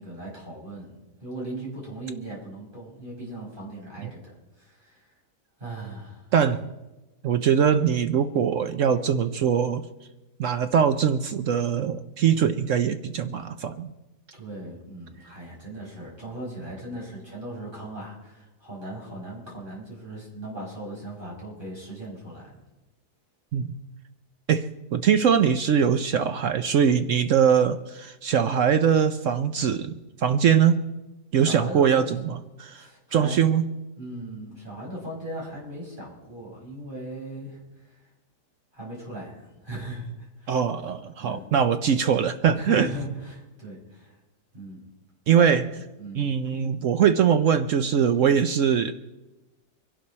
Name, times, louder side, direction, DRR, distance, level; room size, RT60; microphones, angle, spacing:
voice 1, 0.0-5.1 5.6-6.3 14.3-22.6 31.4-32.1 32.7-33.5 34.0-38.0 38.7-40.6 41.2-41.4 42.5-44.2 44.5-44.8 45.3-46.3, right 1 dB, 30° right, -4 dB, 5.7 m, -38 dB
voice 2, 6.3-6.7 7.2-9.8 10.4-13.9 23.5-23.7 24.5-24.7 24.9-30.8 31.3-32.9 33.1-33.7 40.5-42.9 45.3-45.6 46.1-48.9, right 8 dB, 65° right, 10 dB, 0.8 m, -22 dB
24.0 x 11.5 x 4.2 m, 1.1 s
omnidirectional pair, 1.8 m